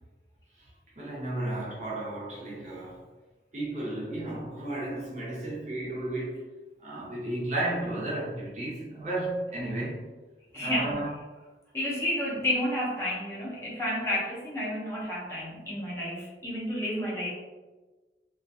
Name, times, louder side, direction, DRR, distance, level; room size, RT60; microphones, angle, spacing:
voice 1, 1.0-3.0 3.5-6.4 6.8-10.0 10.6-11.1, right 2 dB, 40° right, -5 dB, 0.7 m, -33 dB
voice 2, 10.5-11.0 11.7-17.3, left 1 dB, 15° left, -6 dB, 0.6 m, -31 dB
2.4 x 2.3 x 2.6 m, 1.2 s
head